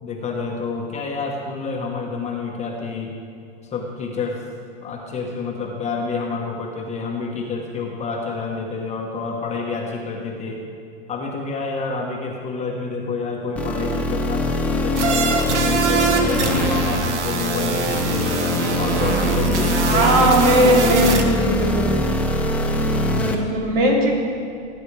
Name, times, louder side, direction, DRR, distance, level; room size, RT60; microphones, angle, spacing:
voice 1, 0.0-3.1 3.7-4.4 4.8-10.7 11.1-18.4 18.8-20.3 20.6-21.7, left 4 dB, 20° left, 0 dB, 1.3 m, -28 dB
sound 1, 13.6-23.3, left 1 dB, 5° left, 0.7 m, -23 dB
sound 2, 15.0-21.2, right 4 dB, 90° right, 1.3 m, -23 dB
voice 2, 19.9-21.9 23.2-24.1, right 1 dB, 65° right, -2 dB, 3.2 m, -18 dB
18.0 x 9.5 x 3.4 m, 2.5 s
hypercardioid pair, 130°, 34 cm